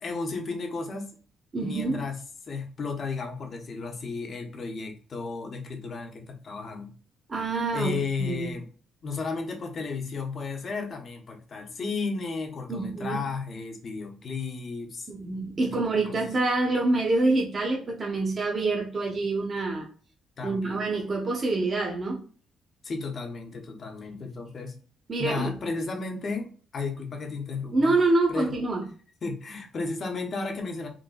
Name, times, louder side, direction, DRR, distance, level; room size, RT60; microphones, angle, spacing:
voice 1, 0.0-1.2 1.6-2.2 2.5-6.9 7.7-8.7 9.0-15.1 15.6-15.8 20.4-20.9 22.8-24.7 25.2-27.9 28.3-28.5 29.2-30.9, left 4 dB, 50° left, 0.8 m, -33 dB
voice 2, 1.5-2.1 7.3-8.5 12.7-13.2 15.1-19.9 20.4-22.2 24.1-24.2 25.1-25.5 27.7-28.8, right 2 dB, 40° right, 1.0 m, -26 dB
3.8 x 2.1 x 2.2 m
cardioid pair, 90°, 0 cm